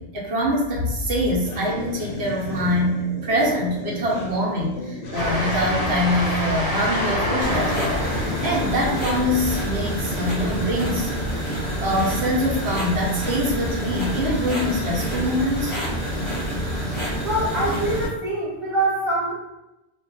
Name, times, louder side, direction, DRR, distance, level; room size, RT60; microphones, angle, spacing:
voice 1, 0.0-11.1 11.8-15.7, equal, 70° right, -4 dB, 0.9 m, -24 dB
sound 1, 1.4-11.7, left 3 dB, 75° left, 0.8 m, -34 dB
Train, 5.1-11.3, equal, 55° left, 0.4 m, -28 dB
sound 2, 7.4-18.1, equal, 30° left, 0.8 m, -27 dB
voice 2, 17.2-19.3, right 1 dB, ahead, -7 dB, 0.9 m, -24 dB
2.2 x 2.1 x 3.7 m, 0.95 s
omnidirectional pair, 1.1 m